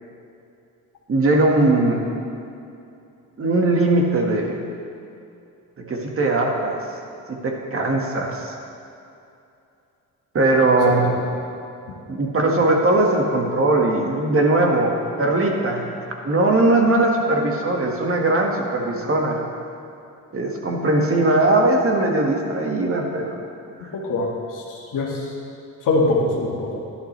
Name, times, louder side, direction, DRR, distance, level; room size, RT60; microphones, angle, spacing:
voice 1, 1.1-2.1 3.4-4.6 5.8-6.8 7.3-8.5 10.3-11.1 12.1-15.9 16.3-19.4 20.3-23.4, right 2 dB, 40° right, 1 dB, 1.8 m, -20 dB
voice 2, 23.8-25.3 25.8-26.8, left 2 dB, 70° left, -4 dB, 1.7 m, -23 dB
12.0 x 11.0 x 3.3 m, 2.6 s
cardioid pair, 85°, 34 cm